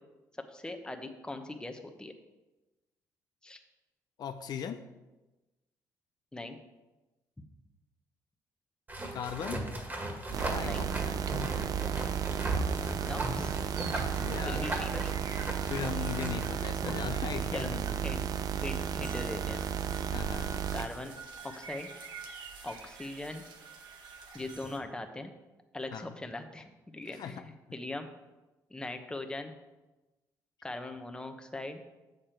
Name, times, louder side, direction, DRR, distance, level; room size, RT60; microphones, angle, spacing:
voice 1, 0.5-2.1 3.4-3.6 6.3-6.6 10.6-10.9 13.0-13.6 14.4-15.1 17.5-17.7 18.0-18.2 18.6-19.6 20.7-21.1 21.4-21.9 22.6-23.4 24.3-25.3 25.7-26.7 26.9-28.1 28.7-29.5 30.6-31.8, left 2 dB, 10° left, 6 dB, 0.9 m, -40 dB
voice 2, 4.2-4.8 9.1-9.6 10.3-11.3 14.1-14.7 15.7-18.0 20.1-20.5 25.9-26.1 27.1-27.4, left 8 dB, 60° left, 8 dB, 0.5 m, -39 dB
sound 1, 8.9-17.1, right 1 dB, 25° right, 1.7 m, -37 dB
sound 2, 10.3-20.9, right 8 dB, 50° right, 0.4 m, -33 dB
sound 3, 12.8-24.8, right 4 dB, 75° right, 1.1 m, -48 dB
7.3 x 6.7 x 4.4 m, 1.1 s
cardioid pair, 80°, 8 cm